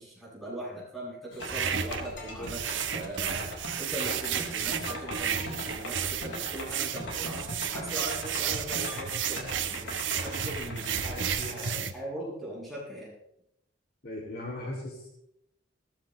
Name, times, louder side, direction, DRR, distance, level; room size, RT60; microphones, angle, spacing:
voice 1, 0.0-2.6 2.9-3.5 3.8-13.1, right 1 dB, ahead, -7 dB, 7.5 m, -40 dB
sound 1, 1.3-11.7, left 1 dB, 80° left, 4.9 m, -40 dB
sound 2, 1.4-11.9, right 8 dB, 80° right, 1.0 m, -32 dB
voice 2, 14.0-15.1, left 1 dB, 55° left, -1 dB, 2.7 m, -37 dB
18.0 x 15.5 x 3.2 m, 0.78 s
head